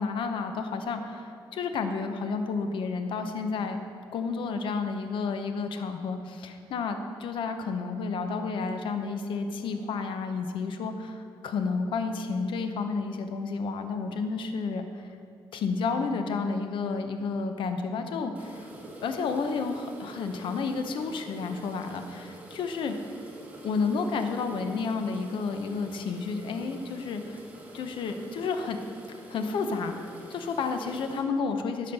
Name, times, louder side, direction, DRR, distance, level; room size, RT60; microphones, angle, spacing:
voice 1, 0.0-3.8 4.1-15.1 15.5-18.7 19.0-22.9 23.6-27.4 27.7-28.8 29.1-29.9 30.3-31.9, left 4 dB, 75° left, 7 dB, 0.8 m, -31 dB
sound 1, 18.3-31.2, right 1 dB, 20° right, 1.7 m, -47 dB
12.5 x 5.1 x 5.4 m, 2.5 s
cardioid pair, 90°, 9 cm